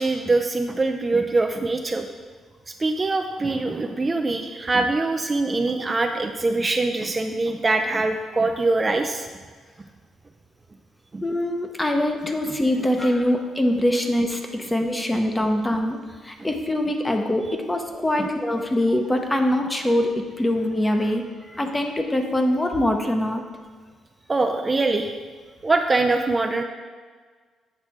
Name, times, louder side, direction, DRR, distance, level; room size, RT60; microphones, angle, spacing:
voice 1, 0.0-2.1 2.8-9.3 11.1-11.2 18.2-18.3 24.3-25.1 25.6-26.6, right 3 dB, 25° right, 5 dB, 0.4 m, -23 dB
voice 2, 11.2-23.5, left 1 dB, 15° left, 4 dB, 0.8 m, -23 dB
8.0 x 3.3 x 5.9 m, 1.5 s
cardioid pair, 90°, 0 cm